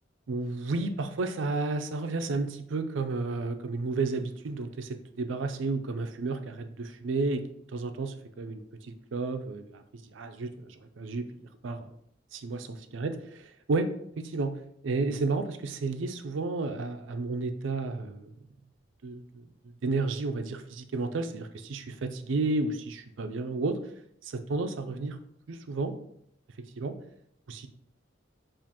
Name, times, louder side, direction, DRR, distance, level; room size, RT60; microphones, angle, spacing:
voice 1, 0.3-7.4 7.7-9.8 10.1-11.3 11.6-11.9 12.3-13.9 14.2-14.5 14.8-18.3 19.0-19.4 19.8-23.8 24.2-25.2 25.5-25.9 26.8-26.9 27.5-27.7, right 3 dB, 70° right, 8 dB, 0.4 m, -32 dB
7.2 x 2.5 x 2.9 m, 0.72 s
head